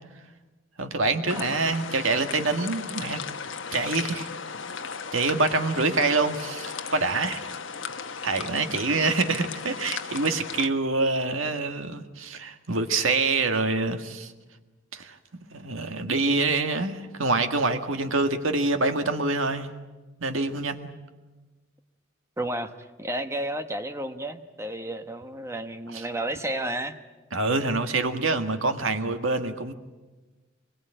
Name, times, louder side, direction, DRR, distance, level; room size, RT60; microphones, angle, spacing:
voice 1, 0.8-3.2 3.7-4.3 5.1-7.4 8.2-14.3 14.9-15.2 15.5-19.7 20.2-20.9 25.9-26.1 27.3-29.7, right 3 dB, 80° right, 7 dB, 1.8 m, -26 dB
sound 1, 1.3-10.7, left 6 dB, 70° left, 1.2 m, -36 dB
voice 2, 22.4-22.7 23.0-27.0, right 1 dB, 15° right, 8 dB, 1.1 m, -32 dB
24.0 x 22.0 x 9.0 m, 1.2 s
head